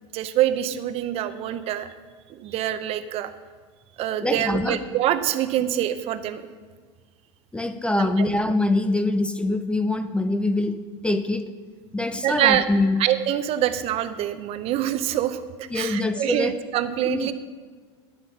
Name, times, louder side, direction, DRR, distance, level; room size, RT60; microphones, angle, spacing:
voice 1, 0.1-1.9 2.3-3.3 4.0-6.4 8.0-8.2 12.2-12.7 13.0-17.3, right 12 dB, 45° right, 11 dB, 0.7 m, -25 dB
voice 2, 4.2-4.8 7.5-10.8 11.0-11.5 11.9-13.0 15.7-16.5 17.0-17.3, left 2 dB, 5° left, 10 dB, 0.5 m, -24 dB
11.0 x 7.7 x 5.9 m, 1.5 s
supercardioid pair, 125°, 14 cm